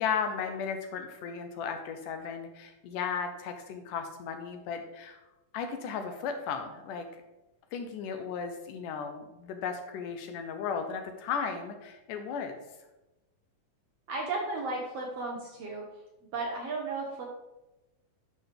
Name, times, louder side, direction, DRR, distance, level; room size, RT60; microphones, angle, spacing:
voice 1, 0.0-5.2 5.5-7.2 7.7-12.6, left 6 dB, 75° left, 6 dB, 2.1 m, -35 dB
voice 2, 14.1-15.9 16.3-17.3, right 3 dB, 65° right, -1 dB, 1.6 m, -34 dB
9.8 x 6.4 x 3.4 m, 0.99 s
omnidirectional pair, 4.0 m